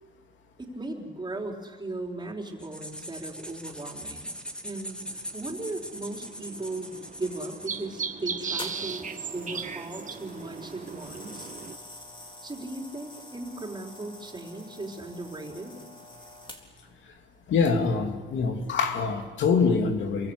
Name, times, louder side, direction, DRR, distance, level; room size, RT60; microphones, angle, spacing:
voice 1, 0.6-4.3 4.6-11.5 12.4-15.8, right 2 dB, 20° right, 1 dB, 4.8 m, -37 dB
sound 1, 2.6-7.9, equal, 5° left, 3.0 m, -41 dB
sound 2, 5.0-11.8, right 6 dB, 40° right, 1.5 m, -38 dB
sound 3, 8.6-16.9 17.6-17.9, left 2 dB, 25° left, 4.0 m, -46 dB
voice 2, 17.5-20.3, left 5 dB, 70° left, 5 dB, 2.7 m, -24 dB
28.5 x 23.0 x 8.3 m, 1.4 s
cardioid pair, 90°, 20 cm